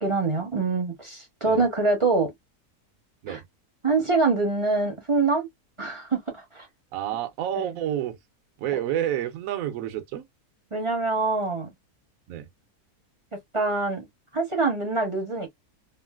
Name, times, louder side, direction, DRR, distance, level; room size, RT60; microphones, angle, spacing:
voice 1, 0.0-2.3 3.3-3.4 3.8-5.5 5.8-6.7 10.7-11.7 13.5-14.1 14.3-15.5, right 3 dB, 25° right, 0.7 m, -24 dB
voice 2, 6.9-8.2 8.6-10.2 12.3-12.4, right 11 dB, 70° right, 1.0 m, -29 dB
3.1 x 2.5 x 2.3 m
omnidirectional pair, 1.6 m